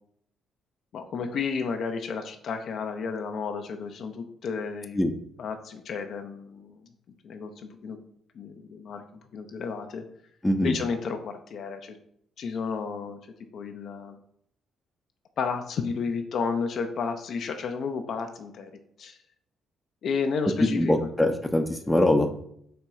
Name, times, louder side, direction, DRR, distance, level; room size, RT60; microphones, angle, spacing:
voice 1, 0.9-5.0 5.4-6.8 7.2-8.0 8.3-9.0 9.3-10.0 10.6-12.0 12.4-13.2 13.5-14.2 15.4-18.7 19.0-19.2 20.0-21.1, left 5 dB, 65° left, 6 dB, 0.5 m, -32 dB
voice 2, 10.4-10.7 20.8-22.3, left 1 dB, 10° left, 6 dB, 0.6 m, -23 dB
4.3 x 2.9 x 3.5 m, 0.66 s
supercardioid pair, 65°, 0 cm